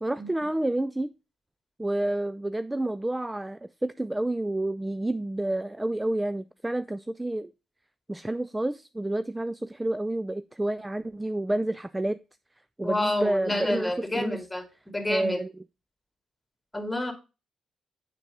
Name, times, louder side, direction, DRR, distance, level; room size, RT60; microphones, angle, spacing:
voice 1, 0.0-1.1 1.8-7.5 8.1-12.2 12.8-14.4 15.1-15.5, right 1 dB, 15° right, 0.4 m, -29 dB
voice 2, 12.8-15.4 16.7-17.1, left 1 dB, 10° left, 2.2 m, -29 dB
6.7 x 6.0 x 3.5 m
supercardioid pair, 65°, 0 cm